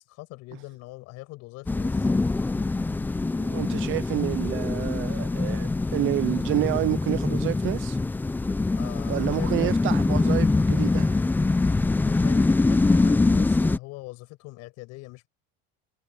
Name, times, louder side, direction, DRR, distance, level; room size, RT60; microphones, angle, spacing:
voice 1, 0.0-2.1 8.8-9.7 12.0-15.3, left 21 dB, 55° left, 6.4 m, -42 dB
sound 1, 1.7-13.8, left 3 dB, 5° left, 0.6 m, -24 dB
voice 2, 3.4-8.0 9.1-11.2, right 16 dB, 40° right, 0.7 m, -29 dB
cardioid pair, 155°, 31 cm